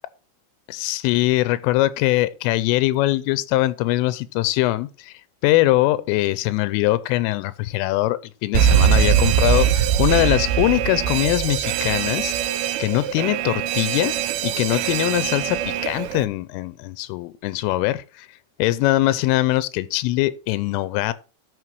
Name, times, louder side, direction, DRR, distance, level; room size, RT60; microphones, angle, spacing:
voice 1, 0.7-5.1 5.4-12.3 12.8-14.1 14.4-18.3 18.6-21.1, left 17 dB, 90° left, 3.2 m, -22 dB
Alarm, 8.6-16.3, right 9 dB, 80° right, 3.1 m, -21 dB
11.0 x 6.5 x 4.6 m
omnidirectional pair, 5.7 m